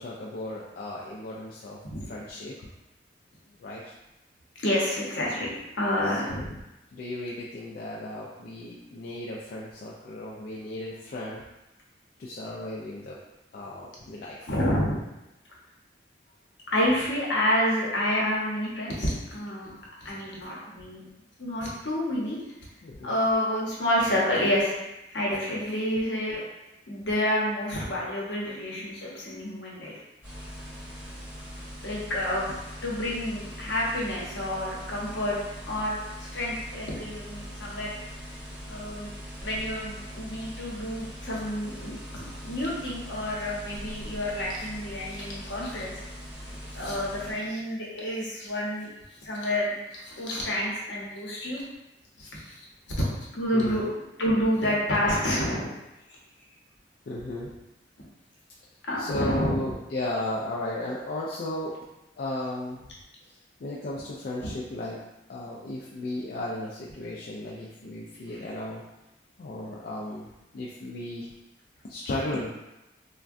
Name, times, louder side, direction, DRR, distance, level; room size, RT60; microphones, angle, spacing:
voice 1, 0.0-2.6 3.6-3.9 6.0-6.5 6.9-11.4 12.2-13.2 13.5-14.6 22.8-23.2 32.5-32.6 39.8-39.9 48.9-49.0 53.5-53.9 57.1-57.6 59.0-61.8 62.2-62.9 63.3-68.8 69.4-70.3 70.5-71.3 71.8-72.6, left 1 dB, 50° left, -5 dB, 0.3 m, -35 dB
voice 2, 4.6-5.5 5.8-6.5 14.5-15.1 16.7-19.7 20.0-21.0 21.4-22.4 23.0-24.7 25.1-26.4 26.9-29.9 31.8-32.5 32.8-35.4 35.7-38.0 38.7-39.1 39.4-42.0 42.4-46.0 46.7-48.9 49.2-51.6 52.2-52.5 52.9-53.0 53.3-53.8 54.2-55.7 58.9-59.6 64.4-64.5, left 1 dB, 70° left, -4 dB, 0.8 m, -28 dB
sound 1, 30.2-47.3, equal, 10° right, 0.8 m, -41 dB
3.4 x 2.2 x 2.5 m, 0.96 s
head